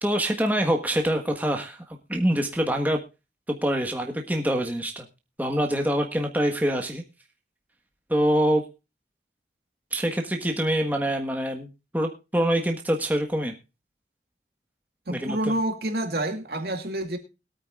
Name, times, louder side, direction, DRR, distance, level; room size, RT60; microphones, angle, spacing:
voice 1, 0.0-3.0 3.5-5.1 5.4-7.0 8.1-8.6 9.9-11.7 11.9-13.5 15.1-15.5, equal, 10° right, 1.5 m, -25 dB
voice 2, 15.1-17.2, right 1 dB, 65° right, 2.3 m, -28 dB
21.5 x 8.8 x 2.4 m
head